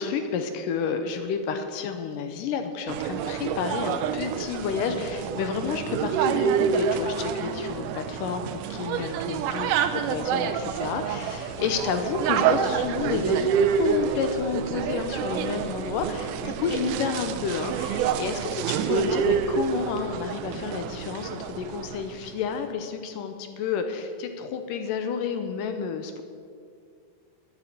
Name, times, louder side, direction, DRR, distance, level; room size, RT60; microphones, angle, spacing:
voice 1, 0.0-26.2, left 6 dB, 75° left, 7 dB, 2.2 m, -30 dB
sound 1, 2.9-22.1, right 7 dB, 90° right, 1.8 m, -27 dB
9.6 x 9.0 x 8.5 m, 2.2 s
omnidirectional pair, 4.4 m